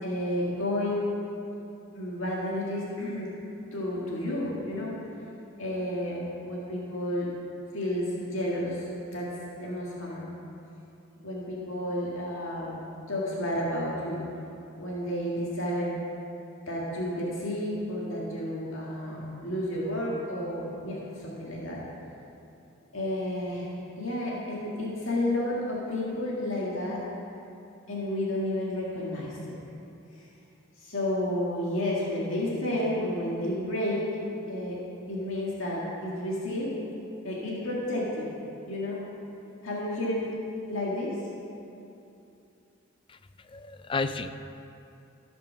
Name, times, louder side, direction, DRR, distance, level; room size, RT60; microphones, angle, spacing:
voice 1, 0.0-1.1 1.9-3.3 3.7-5.0 5.6-7.3 7.7-9.3 9.6-10.2 11.2-12.8 13.1-14.2 14.8-15.9 16.7-21.8 22.9-27.0 27.9-29.6 30.8-34.1 34.5-34.8 35.1-36.7 37.2-38.2 38.7-39.0 39.6-40.3 40.7-41.2, left 1 dB, 80° left, -5 dB, 1.9 m, -31 dB
voice 2, 43.4-44.3, left 4 dB, 25° left, 10 dB, 0.3 m, -32 dB
14.5 x 5.2 x 5.9 m, 2.8 s
head